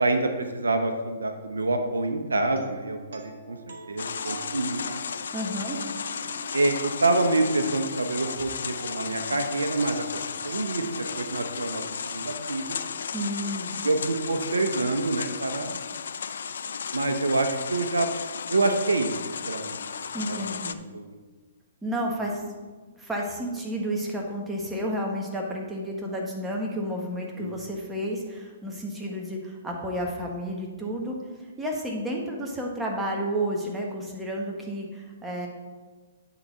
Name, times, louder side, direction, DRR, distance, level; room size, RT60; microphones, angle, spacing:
voice 1, 0.0-3.6 3.9-5.0 6.5-10.8 11.1-12.8 13.8-15.8 16.9-18.1 18.5-19.1 19.4-19.8 20.3-20.4 20.7-21.1 27.4-27.5, right 2 dB, 85° right, 6 dB, 0.8 m, -27 dB
sound 1, 2.5-12.4, right 4 dB, 65° right, 1.3 m, -45 dB
sound 2, 4.0-20.8, left 6 dB, 70° left, 0.4 m, -34 dB
voice 2, 5.3-5.8 13.1-13.7 20.1-20.8 21.8-22.4 23.0-31.2 31.6-35.5, equal, 10° right, -1 dB, 1.5 m, -31 dB
9.8 x 4.0 x 5.5 m, 1.3 s
hypercardioid pair, 125°, 0 cm